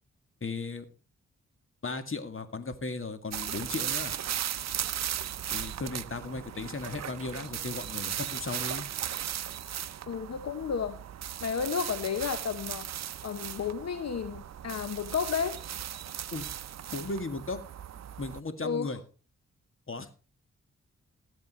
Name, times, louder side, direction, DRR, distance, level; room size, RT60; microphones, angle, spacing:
voice 1, 0.4-0.9 1.8-4.1 5.5-8.9 16.3-16.5 16.9-17.6 18.2-19.0 19.9-20.1, left 3 dB, 45° left, 9 dB, 2.2 m, -36 dB
sound 1, 3.3-18.4, right 10 dB, 65° right, 0.6 m, -37 dB
voice 2, 10.1-11.0 11.4-12.9 13.2-15.6 18.6-18.9, left 6 dB, 60° left, 11 dB, 1.0 m, -32 dB
18.5 x 7.6 x 4.5 m, 0.36 s
cardioid pair, 50°, 29 cm